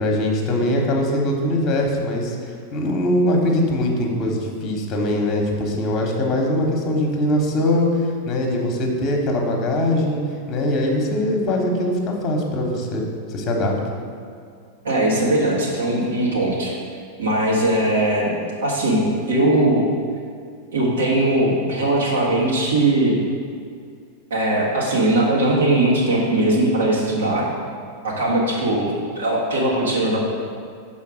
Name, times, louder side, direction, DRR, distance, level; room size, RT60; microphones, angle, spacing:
voice 1, 0.0-10.2 10.5-13.0 13.3-13.7, left 1 dB, 30° left, 1 dB, 1.2 m, -22 dB
voice 2, 14.8-16.7 17.2-18.3 18.6-19.8 20.7-23.2 24.3-27.4 28.0-30.2, right 1 dB, 65° right, -4 dB, 1.4 m, -20 dB
5.7 x 4.3 x 6.2 m, 2.2 s
figure-of-eight pair, 90°, 0 cm